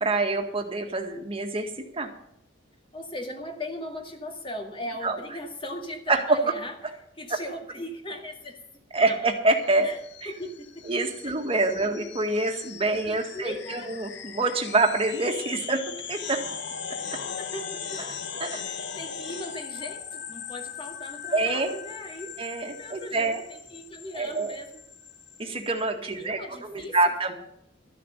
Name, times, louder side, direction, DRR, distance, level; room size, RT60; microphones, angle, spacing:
voice 1, 0.0-2.1 5.0-5.2 6.1-6.4 7.3-7.4 8.9-9.9 10.2-10.3 10.9-15.8 16.1-16.4 18.0-18.1 18.4-18.6 21.3-21.7 22.4-23.4 24.1-24.6 25.4-27.3, right 2 dB, 30° right, 3 dB, 1.9 m, -26 dB
voice 2, 2.9-6.7 7.2-8.6 9.1-9.2 9.8-10.0 10.2-10.9 11.2-11.3 11.8-11.9 12.9-13.9 17.4-18.0 18.6-22.4 22.6-24.9 26.2-27.0, left 1 dB, 25° left, 2 dB, 2.1 m, -38 dB
sound 1, 9.6-25.8, left 7 dB, 65° left, 1.1 m, -39 dB
13.5 x 7.0 x 10.0 m, 0.74 s
head